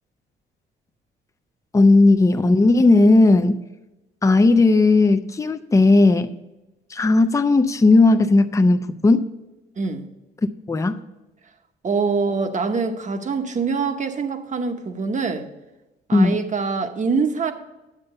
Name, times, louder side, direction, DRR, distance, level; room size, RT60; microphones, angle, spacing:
voice 1, 1.7-3.6 4.2-6.3 6.9-9.3 10.7-11.0 16.1-16.4, left 2 dB, 15° left, 9 dB, 0.5 m, -16 dB
voice 2, 9.8-10.1 11.8-15.5 16.1-17.5, right 4 dB, 40° right, 7 dB, 1.0 m, -24 dB
9.8 x 7.6 x 5.4 m, 1.0 s
cardioid pair, 90°, 20 cm